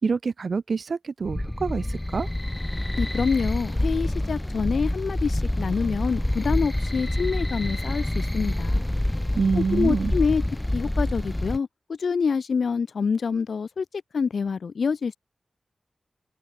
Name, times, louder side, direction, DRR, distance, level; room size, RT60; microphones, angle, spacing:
voice 1, 0.0-2.3 9.4-10.1, right 5 dB, 60° right, 0.5 m, -26 dB
sound 1, 1.2-11.6, left 1 dB, 10° left, 0.4 m, -27 dB
voice 2, 3.0-8.8 9.5-10.4 10.7-15.2, left 5 dB, 70° left, 0.9 m, -26 dB
wide cardioid pair, 125°, 0 cm